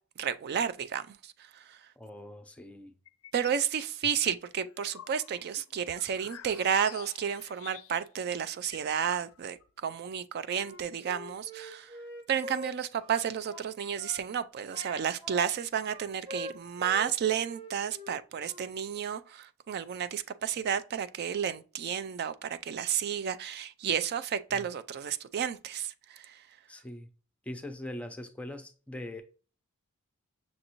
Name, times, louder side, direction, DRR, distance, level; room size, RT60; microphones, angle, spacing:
voice 1, 0.2-1.8 3.3-11.9 12.3-26.4, right 8 dB, 50° right, 0.3 m, -32 dB
voice 2, 2.0-2.9 24.5-24.6 26.7-27.1 27.5-29.2, left 1 dB, 5° left, 0.6 m, -42 dB
sound 1, 3.1-3.6 4.0-8.2 8.5-8.6 8.7-9.7, left 9 dB, 80° left, 0.4 m, -50 dB
Wind instrument woodwind instrument, 10.6-14.2 14.7-17.1 17.4-18.7, left 1 dB, 25° right, 1.0 m, -44 dB
6.2 x 2.6 x 2.9 m
head